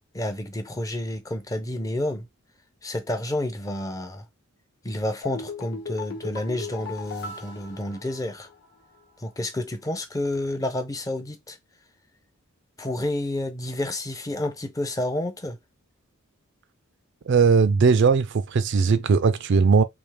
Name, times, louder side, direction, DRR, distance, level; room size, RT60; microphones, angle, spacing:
voice 1, 0.1-2.3 2.8-4.3 4.8-8.5 9.2-11.6 12.8-15.6, left 1 dB, 15° left, 0.5 m, -30 dB
sound 1, 5.2-8.7 8.9-9.0, left 4 dB, 55° left, 1.0 m, -38 dB
voice 2, 17.3-19.8, right 5 dB, 55° right, 0.4 m, -19 dB
3.4 x 2.8 x 3.2 m
head